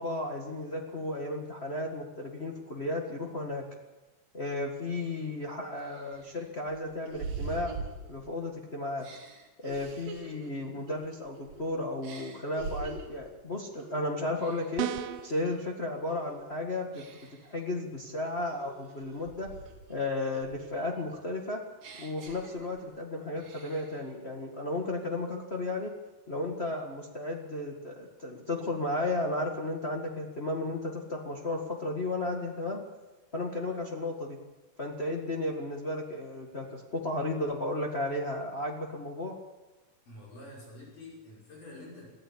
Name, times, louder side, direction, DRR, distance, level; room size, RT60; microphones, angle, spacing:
voice 1, 0.0-3.6 4.3-7.8 8.1-9.0 9.6-14.9 15.2-17.0 17.4-19.5 19.9-21.6 22.0-25.9 26.3-32.8 33.3-34.4 34.8-39.3, left 2 dB, 80° left, 0 dB, 0.5 m, -34 dB
sound 1, 5.2-5.3 5.8-8.5 9.0-11.6 12.0-13.3 13.7-14.0 14.4-15.7 16.1-16.4 16.9-17.5 18.0-20.0 20.3-23.0 23.4-24.0, right 4 dB, 60° right, 4.4 m, -44 dB
sound 2, 14.8-15.3, right 13 dB, 85° right, 2.9 m, -33 dB
voice 2, 40.1-42.1, left 2 dB, 55° left, -3 dB, 7.0 m, -47 dB
23.0 x 14.5 x 8.6 m, 1.1 s
omnidirectional pair, 4.6 m